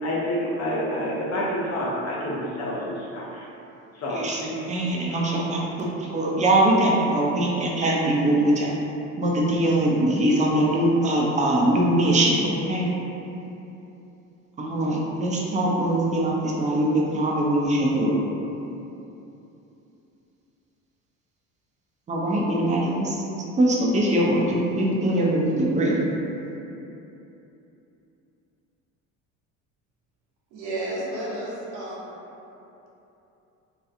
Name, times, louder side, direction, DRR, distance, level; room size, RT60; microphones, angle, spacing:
voice 1, 0.0-3.5 3.9-4.2 5.1-5.3 6.9-7.0, equal, 40° left, -4 dB, 0.6 m, -28 dB
voice 2, 4.1-8.7 9.2-13.0 14.6-18.2 22.1-23.2 23.6-26.1, right 1 dB, 20° right, -3 dB, 0.4 m, -22 dB
voice 3, 30.5-32.1, right 1 dB, 75° right, -6 dB, 0.8 m, -32 dB
2.7 x 2.3 x 2.4 m, 2.9 s
hypercardioid pair, 70°, 40 cm